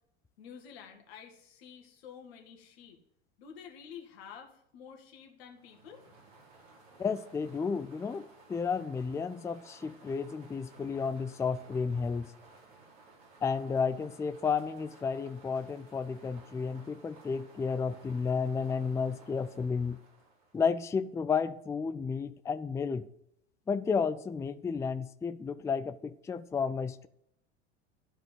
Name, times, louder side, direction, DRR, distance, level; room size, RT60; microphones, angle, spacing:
voice 1, 0.4-3.0 3.4-6.0, left 7 dB, 65° left, 3 dB, 2.0 m, -50 dB
sound 1, 5.5-20.9, right 3 dB, 55° right, 4.3 m, -57 dB
voice 2, 7.0-12.3 13.4-20.0 20.5-23.1 23.7-27.1, left 5 dB, 10° left, 13 dB, 0.4 m, -32 dB
12.5 x 5.1 x 7.6 m, 0.74 s
figure-of-eight pair, 80°, 33 cm